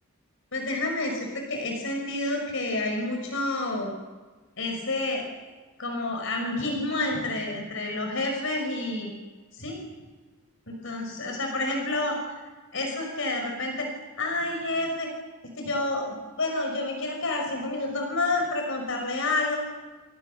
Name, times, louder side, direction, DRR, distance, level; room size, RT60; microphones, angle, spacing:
voice 1, 0.5-3.9 4.6-5.2 5.8-9.1 9.5-9.8 10.7-12.2 12.7-13.9 14.2-15.1 15.6-19.6, left 2 dB, 65° left, 2 dB, 5.7 m, -29 dB
29.0 x 28.5 x 6.8 m, 1.3 s
head